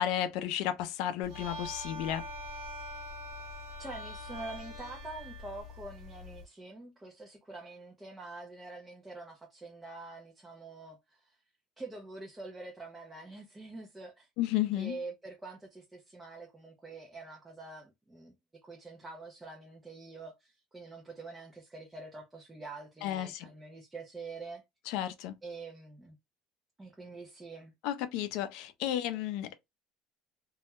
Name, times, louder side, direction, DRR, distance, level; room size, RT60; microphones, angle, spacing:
voice 1, 0.0-2.3 14.4-15.0 23.0-23.5 24.9-25.4 27.8-29.6, left 12 dB, 65° left, 0.4 m, -33 dB
sound 1, 1.2-6.4, left 1 dB, 50° right, 1.1 m, -43 dB
voice 2, 3.8-11.4 11.8-14.3 14.7-18.3 18.6-24.6 25.4-26.2 26.8-27.7, right 3 dB, 10° right, 0.4 m, -46 dB
2.2 x 2.1 x 2.8 m
cardioid pair, 165°, 0 cm